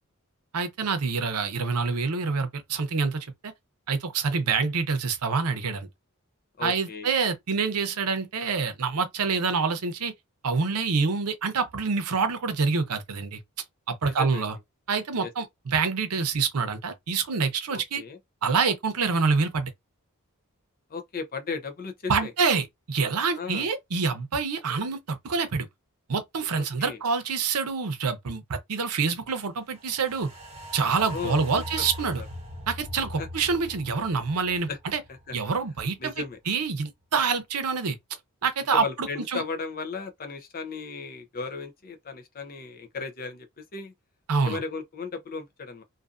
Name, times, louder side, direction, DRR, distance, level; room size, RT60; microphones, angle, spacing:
voice 1, 0.5-3.5 3.9-5.9 6.6-10.1 10.4-13.4 13.9-14.5 14.9-18.0 18.4-19.7 22.1-25.7 26.1-30.3 30.7-32.2 32.7-35.0 35.3-36.1 36.5-38.0 38.4-39.4 44.3-44.6, right 5 dB, 85° right, 0.7 m, -26 dB
voice 2, 6.6-7.1 14.0-14.5 15.2-15.3 17.7-18.2 20.9-22.3 23.3-23.7 26.6-27.0 31.1-31.8 32.2-32.3 33.2-33.3 34.7-34.8 35.1-35.4 36.0-36.4 38.7-43.9 44.5-45.8, left 4 dB, 40° left, 0.6 m, -36 dB
sound 1, 29.7-36.1 36.4-36.5, equal, 30° right, 0.9 m, -41 dB
2.6 x 2.5 x 2.4 m
head